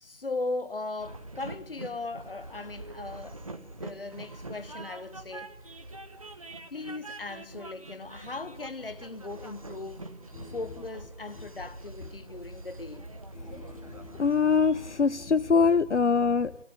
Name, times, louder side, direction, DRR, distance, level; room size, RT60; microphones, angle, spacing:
voice 1, 0.0-3.4 3.8-5.6 6.7-10.1 10.5-13.1, left 3 dB, 50° left, 1.3 m, -38 dB
Train, 1.0-14.9, right 2 dB, 30° right, 1.4 m, -44 dB
voice 2, 13.4-16.6, left 5 dB, 75° left, 0.8 m, -24 dB
26.5 x 17.5 x 9.9 m
figure-of-eight pair, 170°, 35 cm